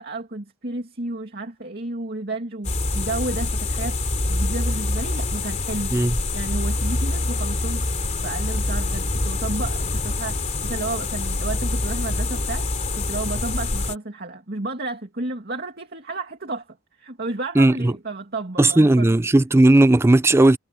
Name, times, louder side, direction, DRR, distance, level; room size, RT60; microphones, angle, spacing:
voice 1, 0.0-4.0 4.3-7.8 8.2-12.7 12.9-19.2, right 2 dB, 50° right, 2.4 m, -32 dB
sound 1, 2.6-14.0, left 2 dB, 35° left, 3.0 m, -25 dB
voice 2, 17.6-17.9 18.6-20.6, right 2 dB, 10° right, 0.3 m, -16 dB
head